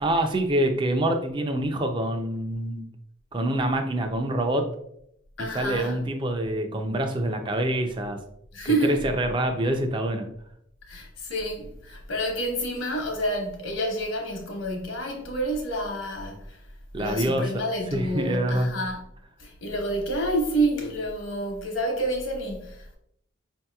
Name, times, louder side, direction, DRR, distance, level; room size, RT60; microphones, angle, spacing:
voice 1, 0.0-2.9 3.3-4.7 5.4-8.2 8.8-10.3 16.9-17.5 17.9-18.7, right 1 dB, 25° right, 0.4 m, -26 dB
voice 2, 5.4-6.0 8.5-9.0 10.9-16.6 17.0-19.0 19.4-23.0, right 1 dB, 75° left, 1.0 m, -28 dB
5.2 x 2.8 x 2.2 m
head